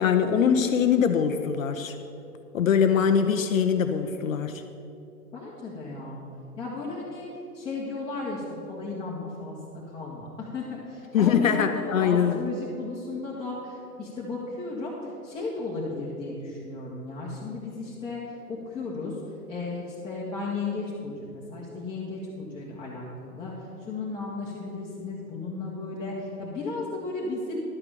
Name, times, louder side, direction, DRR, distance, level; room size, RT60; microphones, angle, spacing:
voice 1, 0.0-2.0 2.5-4.6 11.1-12.4, left 7 dB, 60° left, 7 dB, 0.8 m, -22 dB
voice 2, 5.3-6.2 6.6-7.3 7.5-8.4 8.7-9.6 9.9-14.9 15.2-19.2 19.5-23.5 23.8-27.5, left 3 dB, 10° left, -7 dB, 1.6 m, -35 dB
12.0 x 6.7 x 6.9 m, 2.8 s
hypercardioid pair, 130°, 47 cm